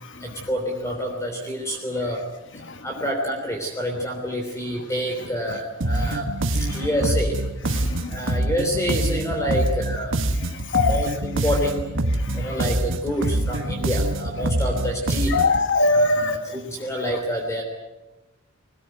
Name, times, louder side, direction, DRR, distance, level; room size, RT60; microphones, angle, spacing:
voice 1, 0.2-2.2 2.5-6.3 6.6-7.3 8.1-15.4 15.9-17.6, equal, 15° left, 2 dB, 3.3 m, -28 dB
sound 1, 5.8-15.7, right 1 dB, 60° right, 1.3 m, -25 dB
voice 2, 7.7-8.2 10.7-11.0 12.2-12.5 15.3-16.6, left 3 dB, 60° left, 9 dB, 1.4 m, -22 dB
22.0 x 19.0 x 9.3 m, 1.0 s
head